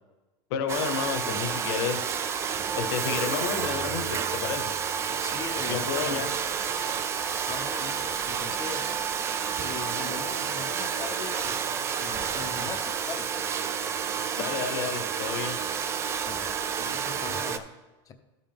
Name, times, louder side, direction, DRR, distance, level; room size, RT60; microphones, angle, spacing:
voice 1, 0.5-2.2 2.7-4.7 5.7-6.3 14.4-15.6, left 7 dB, 65° left, 7 dB, 1.1 m, -31 dB
Domestic sounds home sounds, 0.7-17.6, right 7 dB, 20° right, 0.3 m, -30 dB
voice 2, 5.1-6.3 7.5-9.0 9.6-11.6 12.0-13.3 16.2-17.7 18.1-18.2, left 6 dB, 25° left, 7 dB, 0.7 m, -40 dB
12.5 x 5.5 x 3.5 m, 1.2 s
supercardioid pair, 160°, 14 cm